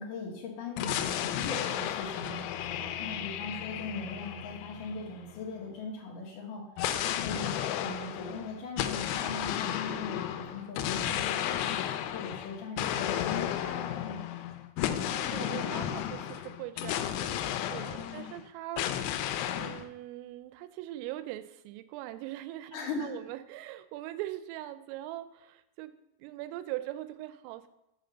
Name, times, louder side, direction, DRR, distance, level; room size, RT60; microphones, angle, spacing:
voice 1, 0.0-2.5 3.0-6.6 7.0-11.8 12.1-14.2 17.9-18.3 22.7-23.2, left 3 dB, 70° left, -6 dB, 2.0 m, -40 dB
sound 1, 0.8-5.5 6.8-18.4 18.8-19.8, left 11 dB, 90° left, 3.3 m, -33 dB
voice 2, 2.8-3.2 14.9-17.4 17.7-18.9 19.6-27.7, right 15 dB, 85° right, 12 dB, 3.2 m, -41 dB
7.1 x 5.1 x 6.7 m, 0.88 s
omnidirectional pair, 5.8 m